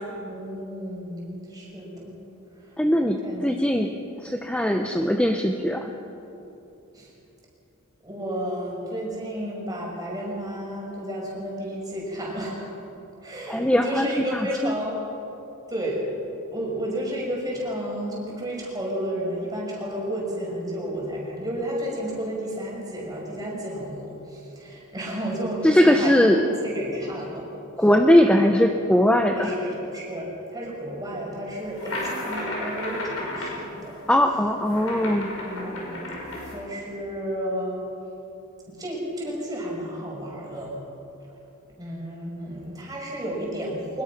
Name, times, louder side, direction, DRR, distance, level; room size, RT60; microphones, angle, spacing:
voice 1, 0.2-2.2 3.2-3.9 6.9-7.1 8.0-12.7 13.2-15.0 15.7-16.0 16.5-27.5 29.4-34.0 35.4-36.0 36.5-37.9 38.8-40.7 41.8-44.0, equal, 15° right, -3 dB, 5.8 m, -32 dB
voice 2, 2.8-3.9 4.2-5.9 13.5-14.1 14.3-14.7 25.6-26.5 27.8-29.5 34.1-35.3, left 1 dB, 5° left, 4 dB, 0.8 m, -20 dB
sound 1, 31.6-36.5, left 1 dB, 70° left, 5.8 m, -33 dB
23.0 x 21.0 x 6.0 m, 2.9 s
head